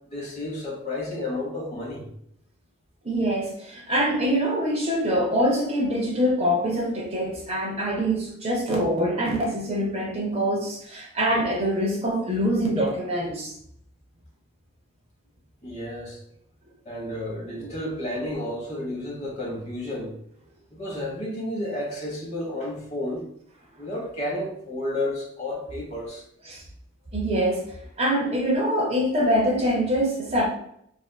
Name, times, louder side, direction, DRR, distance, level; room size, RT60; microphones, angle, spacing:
voice 1, 0.1-2.1 15.6-16.2 16.8-20.1 20.7-23.2 23.8-26.2, left 1 dB, 35° left, -2 dB, 0.9 m, -31 dB
voice 2, 3.0-13.5 17.6-17.7 26.5-26.6 27.1-30.5, equal, 30° right, -1 dB, 0.6 m, -24 dB
3.3 x 2.6 x 2.2 m, 0.71 s
head